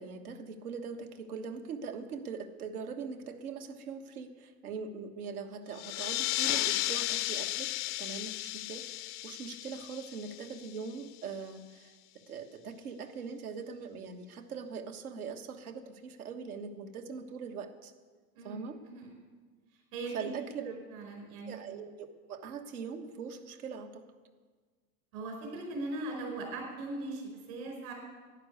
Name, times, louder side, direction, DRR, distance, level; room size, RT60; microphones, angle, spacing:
voice 1, 0.0-7.7 8.0-11.9 12.3-17.9 18.4-18.8 20.1-20.7 21.5-24.0, right 5 dB, 85° right, 5 dB, 1.4 m, -41 dB
sound 1, 5.7-10.9, left 18 dB, 40° left, 0.4 m, -34 dB
voice 2, 19.9-20.3 20.7-21.6 25.1-27.9, right 2 dB, 70° right, 2 dB, 4.8 m, -39 dB
11.5 x 10.0 x 8.2 m, 1.5 s
hypercardioid pair, 100°, 43 cm